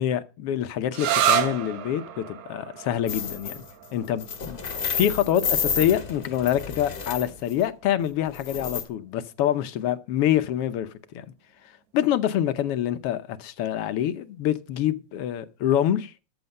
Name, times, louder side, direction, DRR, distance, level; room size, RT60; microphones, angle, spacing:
voice 1, 0.0-3.6 3.9-4.6 5.0-10.9 11.1-11.2 11.9-16.1, left 11 dB, 70° left, 1.4 m, -26 dB
sound 1, 0.9-8.3, right 9 dB, 75° right, 2.5 m, -31 dB
sound 2, 3.1-3.7 4.0-7.6 8.3-8.8, left 7 dB, 35° left, 1.8 m, -30 dB
14.0 x 8.0 x 5.3 m
omnidirectional pair, 3.4 m